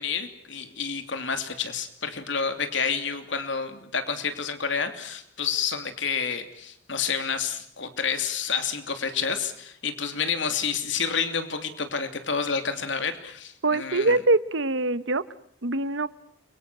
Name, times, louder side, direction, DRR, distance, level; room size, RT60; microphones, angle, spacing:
voice 1, 0.0-14.1, left 6 dB, 70° left, 8 dB, 3.0 m, -29 dB
voice 2, 13.6-15.2 15.6-16.1, right 2 dB, 75° right, 15 dB, 1.1 m, -23 dB
29.5 x 23.5 x 6.3 m, 0.65 s
head